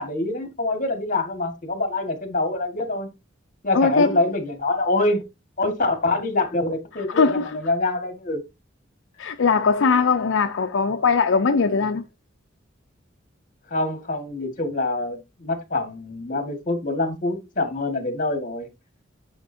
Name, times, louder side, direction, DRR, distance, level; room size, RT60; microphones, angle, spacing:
voice 1, 0.0-3.1 3.6-5.3 5.6-7.3 7.5-8.4 13.7-18.7, left 2 dB, 45° left, 1.7 m, -25 dB
voice 2, 3.7-4.2 7.1-7.6 9.2-12.0, left 5 dB, 75° left, 0.5 m, -20 dB
9.7 x 5.1 x 2.7 m
head